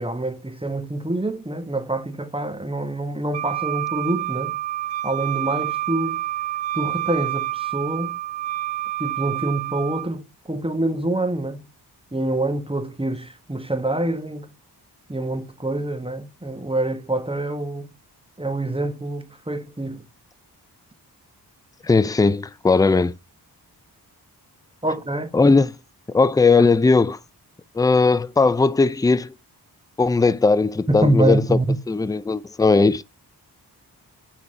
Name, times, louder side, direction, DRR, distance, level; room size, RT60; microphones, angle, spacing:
voice 1, 0.0-4.6 5.0-6.2 6.7-8.2 9.0-11.7 12.1-14.5 15.1-17.9 18.4-20.0 24.8-25.3 30.9-31.8, right 1 dB, 15° right, 1.3 m, -26 dB
Wind instrument woodwind instrument, 3.3-10.1, right 15 dB, 90° right, 0.8 m, -28 dB
voice 2, 21.8-23.1 25.3-25.7 26.1-27.2 27.7-29.3 30.0-31.6 31.9-33.0, left 3 dB, 10° left, 0.4 m, -18 dB
9.4 x 4.1 x 5.2 m
cardioid pair, 45°, 42 cm